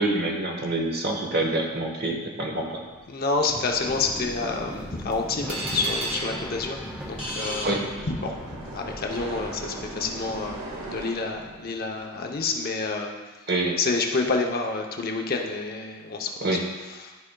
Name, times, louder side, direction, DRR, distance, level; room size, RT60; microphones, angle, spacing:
voice 1, 0.0-2.8 7.6-7.9 13.5-13.8 16.4-16.7, right 2 dB, 45° right, 1 dB, 1.0 m, -26 dB
sound 1, 2.0-12.1 12.4-13.2, equal, 5° right, 0.6 m, -40 dB
voice 2, 3.1-7.8 8.1-13.1 13.8-16.5 17.0-17.1, left 3 dB, 45° left, 1 dB, 0.7 m, -28 dB
sound 2, 5.1-11.1, right 2 dB, 85° right, 1.7 m, -41 dB
sound 3, 5.5-8.5, right 1 dB, 25° right, 1.2 m, -34 dB
12.5 x 4.9 x 2.3 m, 1.3 s
head